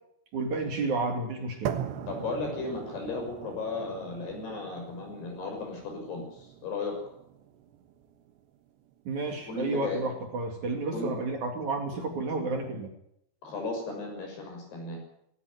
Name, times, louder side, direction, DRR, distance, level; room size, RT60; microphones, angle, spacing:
voice 1, 0.3-1.7 9.1-12.9, right 3 dB, 50° right, 4 dB, 3.6 m, -31 dB
sound 1, 1.7-9.7, right 9 dB, 80° right, 3.4 m, -41 dB
voice 2, 2.1-7.0 9.2-10.0 10.9-11.1 13.4-15.0, left 3 dB, 70° left, 2 dB, 8.3 m, -35 dB
18.0 x 17.0 x 9.7 m, 0.74 s
omnidirectional pair, 4.9 m